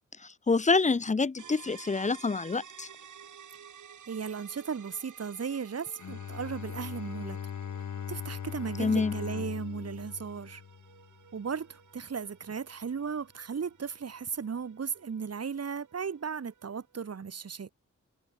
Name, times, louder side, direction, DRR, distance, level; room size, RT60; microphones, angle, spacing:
voice 1, 0.5-2.9 8.8-9.1, left 4 dB, 25° left, 0.7 m, -26 dB
sound 1, 1.4-16.9, right 8 dB, 85° right, 6.9 m, -54 dB
voice 2, 4.1-7.4 8.1-10.6 11.3-17.7, right 6 dB, 55° right, 2.6 m, -36 dB
Bowed string instrument, 6.0-11.3, left 8 dB, 70° left, 1.5 m, -39 dB
cardioid pair, 75°, 29 cm